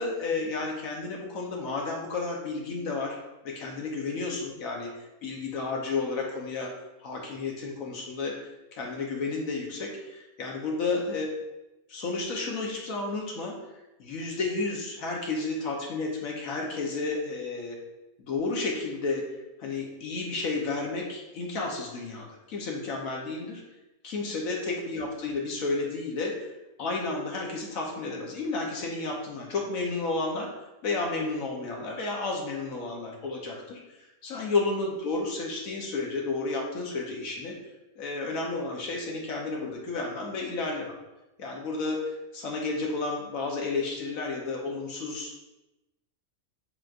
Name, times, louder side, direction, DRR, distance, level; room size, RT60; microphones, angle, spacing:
voice 1, 0.0-3.2 3.4-6.7 7.0-11.3 11.9-13.6 14.0-17.8 18.2-19.2 19.6-23.6 24.0-26.5 26.8-30.5 30.8-33.8 34.2-37.6 38.0-40.9 41.4-45.4, left 3 dB, 75° left, -1 dB, 1.2 m, -32 dB
7.0 x 3.0 x 2.5 m, 0.98 s
omnidirectional pair, 1.5 m